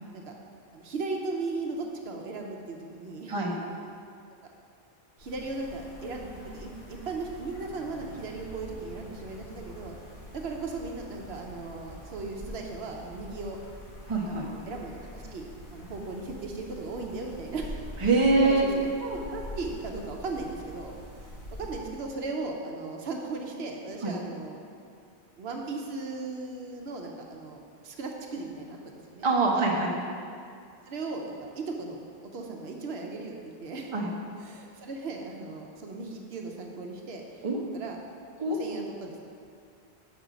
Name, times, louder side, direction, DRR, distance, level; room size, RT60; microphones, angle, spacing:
voice 1, 0.7-3.3 5.2-10.0 10.3-13.6 14.3-17.8 18.1-18.7 19.0-20.9 21.6-24.6 25.4-29.3 30.9-33.3 33.6-33.9 34.4-37.2 37.7-38.0 38.6-39.2, right 3 dB, 80° right, 1 dB, 1.0 m, -37 dB
sound 1, 5.2-22.1, equal, 50° left, 1.8 m, -45 dB
voice 2, 14.1-14.5 18.0-18.7 24.0-24.1 29.2-30.0 33.9-34.1 37.4-37.6 38.4-38.6, right 3 dB, 30° right, -2 dB, 0.9 m, -24 dB
6.8 x 5.4 x 5.0 m, 2.4 s
omnidirectional pair, 1.1 m